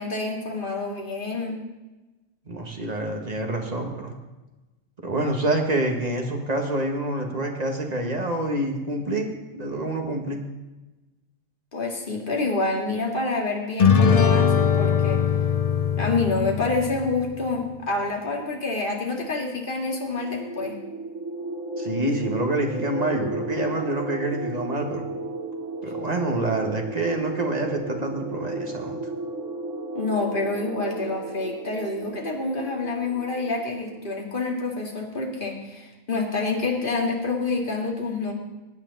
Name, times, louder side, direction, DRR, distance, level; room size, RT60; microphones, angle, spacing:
voice 1, 0.0-1.6 11.7-15.2 16.0-20.8 29.9-38.3, left 3 dB, 40° left, 0 dB, 2.3 m, -27 dB
voice 2, 2.5-4.1 5.0-10.4 21.8-25.1 25.8-29.0, right 1 dB, 30° right, 2 dB, 1.7 m, -27 dB
sound 1, 13.8-17.4, left 7 dB, 60° left, 0.3 m, -21 dB
sound 2, 20.1-34.4, right 2 dB, 65° right, 1.6 m, -34 dB
20.0 x 8.9 x 4.1 m, 1.1 s
omnidirectional pair, 1.4 m